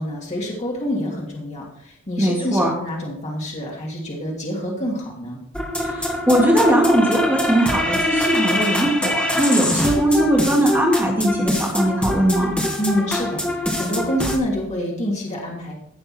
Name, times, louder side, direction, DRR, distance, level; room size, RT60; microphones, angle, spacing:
voice 1, 0.0-5.4 12.8-15.7, equal, 35° left, -3 dB, 2.7 m, -27 dB
voice 2, 2.2-2.7 5.8-12.5, right 1 dB, 10° right, -3 dB, 2.3 m, -19 dB
sound 1, 5.5-14.4, left 1 dB, 5° left, 2.0 m, -24 dB
16.0 x 6.7 x 4.4 m, 0.66 s
head